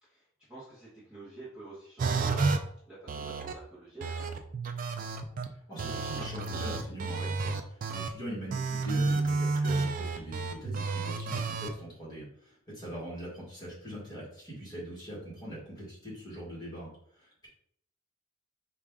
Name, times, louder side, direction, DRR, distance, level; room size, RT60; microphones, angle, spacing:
voice 1, 0.0-2.6 2.9-4.3, right 2 dB, 5° right, -10 dB, 1.1 m, -48 dB
sound 1, 2.0-2.6 3.1-3.5 4.0-5.5 5.8-8.1 8.5-11.7, right 4 dB, 40° right, 0.3 m, -31 dB
voice 2, 5.7-17.5, right 1 dB, 20° left, -6 dB, 1.6 m, -42 dB
4.8 x 2.4 x 3.5 m, 0.68 s
head